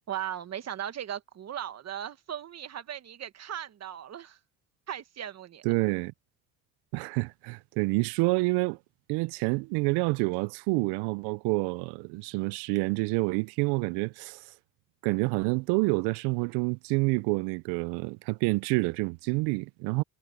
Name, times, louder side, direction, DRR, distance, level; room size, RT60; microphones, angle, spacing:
voice 1, 0.1-4.4 4.9-5.6, right 10 dB, 40° right, 1.5 m, -37 dB
voice 2, 5.6-6.1 6.9-8.8 9.1-14.5 15.0-20.0, right 27 dB, 75° right, 0.5 m, -28 dB
supercardioid pair, 90°, 40 cm